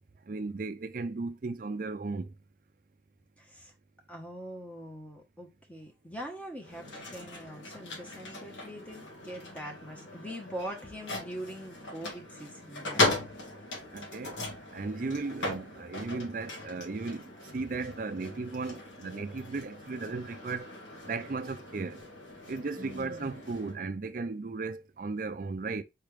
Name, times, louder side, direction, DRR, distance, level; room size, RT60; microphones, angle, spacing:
voice 1, 0.3-2.3 13.9-14.4 14.7-17.3 17.5-20.7 21.1-22.0 22.5-25.8, right 3 dB, 45° right, 0.4 m, -36 dB
voice 2, 3.4-3.7 4.1-13.0 22.8-23.3, equal, 10° left, 1.0 m, -43 dB
sound 1, 6.6-23.7, left 2 dB, 90° left, 1.8 m, -38 dB
4.6 x 3.4 x 3.1 m
head